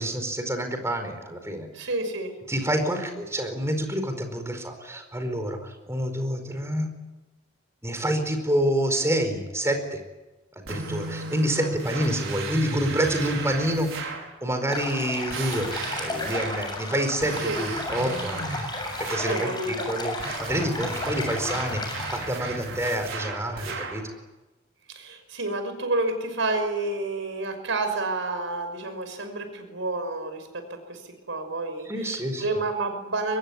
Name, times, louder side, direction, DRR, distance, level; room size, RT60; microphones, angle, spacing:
voice 1, 0.0-1.7 2.5-6.9 7.8-10.0 10.6-13.9 14.4-15.7 16.0-18.5 19.0-24.0 31.9-32.4, right 1 dB, 15° right, 6 dB, 4.7 m, -28 dB
voice 2, 1.7-2.3 11.6-11.7 17.4-17.6 19.2-19.9 24.9-30.5 30.9-31.0 31.3-33.4, right 2 dB, 70° right, 8 dB, 5.9 m, -29 dB
sound 1, 10.7-14.3 15.3-16.7 17.2-19.5 20.2-24.1, right 3 dB, 85° right, 5.6 m, -34 dB
sound 2, 14.7-22.3, left 2 dB, 20° left, 7.5 m, -33 dB
24.0 x 21.5 x 9.8 m, 1.1 s
head